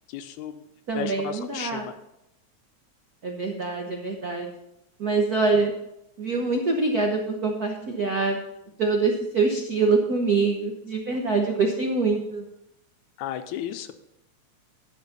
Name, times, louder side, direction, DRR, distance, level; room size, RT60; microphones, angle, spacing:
voice 1, 0.1-0.6 1.0-1.9 13.2-13.9, left 10 dB, 90° left, 9 dB, 2.1 m, -33 dB
voice 2, 0.9-1.9 3.2-4.5 5.0-5.7 6.2-8.4 8.8-12.5, right 3 dB, 85° right, 2 dB, 0.8 m, -24 dB
12.0 x 5.1 x 7.0 m, 0.84 s
omnidirectional pair, 3.3 m